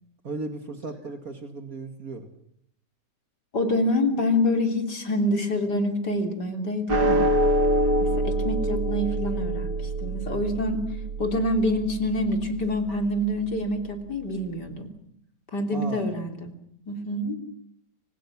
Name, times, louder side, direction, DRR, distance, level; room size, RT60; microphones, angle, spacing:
voice 1, 0.2-2.3 15.7-16.1, right 3 dB, 55° right, 6 dB, 2.7 m, -36 dB
voice 2, 3.5-7.3 8.0-10.8 11.2-14.9 15.5-16.5 16.9-17.4, left 1 dB, 75° left, 4 dB, 4.0 m, -26 dB
sound 1, 6.9-13.4, right 1 dB, 70° right, 3.2 m, -26 dB
29.0 x 26.0 x 6.2 m, 0.70 s
omnidirectional pair, 1.8 m